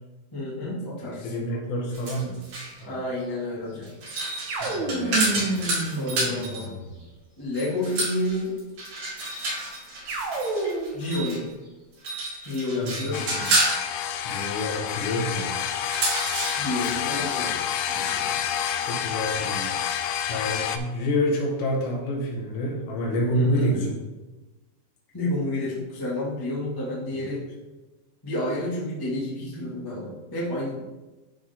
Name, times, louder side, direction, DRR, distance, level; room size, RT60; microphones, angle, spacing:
voice 1, 0.3-1.3 2.8-3.9 5.9-6.7 7.4-8.5 10.9-11.4 12.4-13.4 16.6-17.6 17.9-18.4 23.3-23.7 25.1-27.4 28.2-30.9, left 1 dB, 35° left, -7 dB, 0.3 m, -30 dB
voice 2, 1.2-2.5 2.8-3.0 4.5-5.7 12.8-13.1 13.3-13.6 14.3-15.6 18.8-19.7 20.3-24.0 27.1-27.3, equal, 75° left, -2 dB, 3.6 m, -28 dB
sound 1, 1.9-2.8 3.8-6.7 7.5-11.4 11.9-13.9 15.7-16.9, right 2 dB, 50° right, 4.0 m, -29 dB
sound 2, 4.5-7.0 10.1-11.1, right 2 dB, 90° right, 1.6 m, -29 dB
sound 3, 13.1-20.8, left 9 dB, 90° left, 2.9 m, -28 dB
12.0 x 4.8 x 3.7 m, 1.1 s
omnidirectional pair, 5.1 m